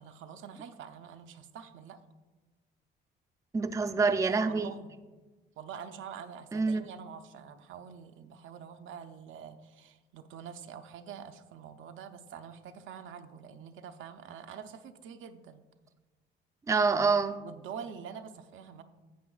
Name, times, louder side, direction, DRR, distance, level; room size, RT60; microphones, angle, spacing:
voice 1, 0.0-2.0 4.5-4.9 5.6-15.6 17.4-18.8, right 7 dB, 75° right, 7 dB, 0.6 m, -46 dB
voice 2, 3.5-4.7 6.5-6.8 16.7-17.4, right 4 dB, 15° right, 8 dB, 0.4 m, -26 dB
11.0 x 7.8 x 2.3 m, 1.3 s
cardioid pair, 90°, 20 cm